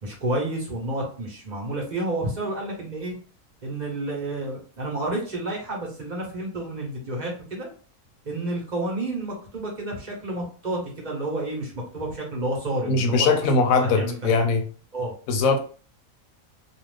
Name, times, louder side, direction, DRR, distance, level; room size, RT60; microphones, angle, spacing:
voice 1, 0.0-3.1 3.6-7.7 8.2-13.3 13.7-14.3 14.9-15.1, right 1 dB, 35° right, -1 dB, 0.9 m, -30 dB
voice 2, 12.9-14.6 15.3-15.6, left 4 dB, 75° left, 5 dB, 1.0 m, -21 dB
2.4 x 2.4 x 3.3 m, 0.40 s
omnidirectional pair, 1.5 m